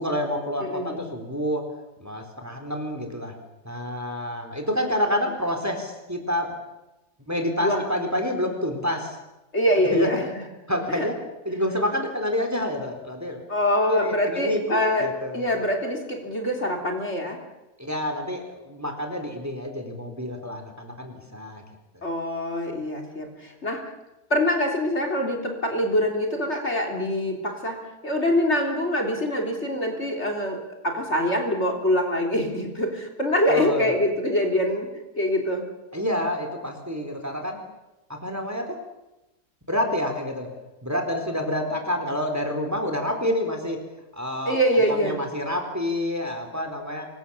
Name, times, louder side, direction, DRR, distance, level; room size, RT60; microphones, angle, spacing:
voice 1, 0.0-1.6 2.0-3.3 3.6-6.5 7.3-9.2 9.9-10.1 10.7-11.2 11.5-13.4 13.9-15.4 17.8-21.6 21.9-22.1 33.5-33.9 35.9-37.6 38.1-38.8 39.7-40.5 40.8-43.8 44.1-47.1, left 1 dB, 10° right, 4 dB, 4.0 m, -28 dB
voice 2, 0.6-1.0 7.6-7.8 9.5-10.2 11.0-11.1 13.5-15.1 15.3-17.4 22.0-23.8 24.3-30.6 30.8-34.9 35.2-35.6 44.5-45.2, left 1 dB, 40° left, 2 dB, 3.8 m, -24 dB
26.5 x 23.5 x 7.3 m, 0.98 s
omnidirectional pair, 1.8 m